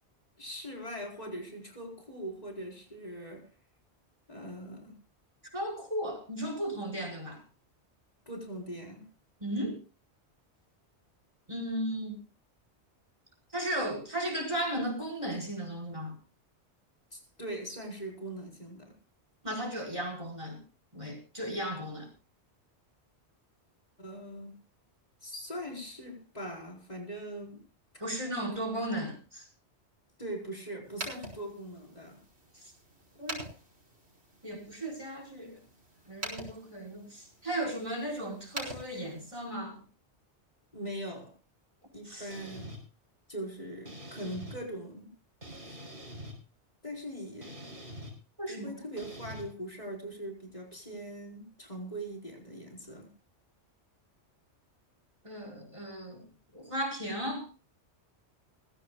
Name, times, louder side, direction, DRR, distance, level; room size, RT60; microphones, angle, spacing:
voice 1, 0.4-3.5 4.3-5.0 8.3-9.1 17.1-19.0 24.0-24.6 25.2-27.6 28.5-28.7 30.2-32.2 40.7-41.4 41.9-42.7 43.3-45.1 45.7-45.8 46.8-47.8 48.5-53.1, right 1 dB, 35° left, 4.7 m, -41 dB
voice 2, 5.5-7.4 9.4-9.8 11.5-12.2 13.5-16.1 19.4-20.6 20.9-22.1 28.0-29.5 33.2-33.4 34.4-35.6 36.1-39.8 42.1-42.3 48.4-48.8 55.2-56.2 56.5-57.5, right 1 dB, 25° right, 5.1 m, -35 dB
sound 1, 30.8-39.6, right 1 dB, 65° right, 5.1 m, -46 dB
sound 2, 42.3-42.8 43.9-44.6 45.4-46.4 47.4-48.1 49.0-49.4, equal, 50° right, 5.5 m, -44 dB
20.5 x 16.0 x 2.3 m
omnidirectional pair, 1.2 m